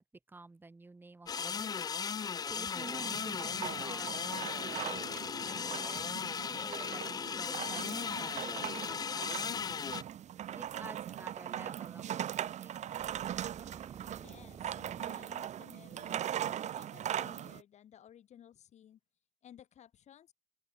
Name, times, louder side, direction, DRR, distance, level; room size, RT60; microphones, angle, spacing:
voice 1, 0.0-1.7 2.5-5.1 5.5-6.1 6.5-10.0 10.5-13.0, right 3 dB, 15° right, 7.1 m, -51 dB
sound 1, 1.3-10.0, left 6 dB, 35° left, 0.5 m, -37 dB
sound 2, 2.8-17.6, right 10 dB, 90° right, 2.1 m, -40 dB
sound 3, 13.0-16.3, right 6 dB, 40° right, 5.3 m, -53 dB
voice 2, 14.2-19.0 19.4-20.3, left 10 dB, 80° left, 7.4 m, -57 dB
open air
wide cardioid pair, 175°, 12 cm